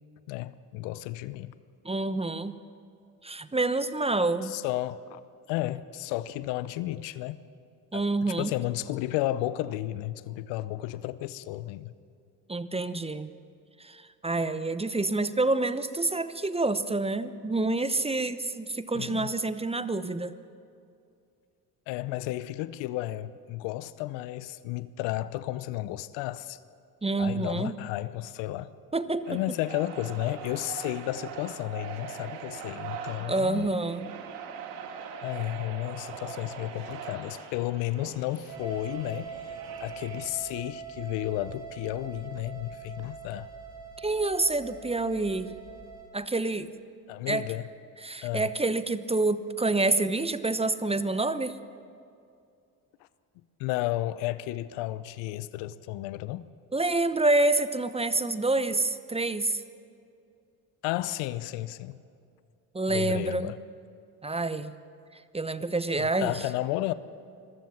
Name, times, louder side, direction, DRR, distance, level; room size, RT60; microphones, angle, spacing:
voice 1, 0.3-1.5 4.4-5.2 5.5-7.4 7.9-8.0 8.3-11.9 18.9-19.3 21.9-26.6 27.2-28.7 29.3-33.7 35.2-39.4 39.8-43.5 47.1-47.7 48.2-48.5 53.6-56.5 60.8-62.0 62.9-63.6 66.0-66.9, left 15 dB, 70° left, 16 dB, 0.9 m, -33 dB
voice 2, 1.8-2.6 3.2-4.5 7.9-8.5 12.5-13.3 13.8-20.4 27.0-27.7 28.9-29.4 33.3-34.1 44.0-45.5 46.1-46.7 47.3-47.4 48.0-51.6 56.7-59.6 62.7-63.5 64.2-64.7 65.1-66.4, right 2 dB, 15° right, 13 dB, 0.9 m, -27 dB
sound 1, 29.2-40.3, right 6 dB, 80° right, 2.1 m, -42 dB
sound 2, 38.5-46.1, right 6 dB, 55° right, 6.8 m, -43 dB
25.5 x 15.0 x 7.2 m, 2.4 s
hypercardioid pair, 65°, 46 cm